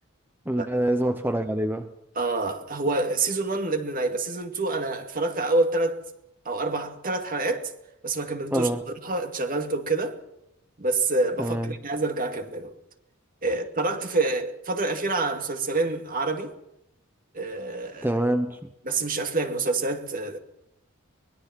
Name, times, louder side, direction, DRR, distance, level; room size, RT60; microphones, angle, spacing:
voice 1, 0.5-1.9 8.5-8.8 11.4-11.7 18.0-18.7, right 1 dB, 10° right, 0.9 m, -25 dB
voice 2, 2.2-6.0 6.4-7.7 8.0-8.7 9.0-10.2 10.8-12.7 13.4-16.5 17.3-18.1 18.8-20.4, right 3 dB, 40° right, 2.3 m, -27 dB
23.5 x 21.0 x 5.9 m
head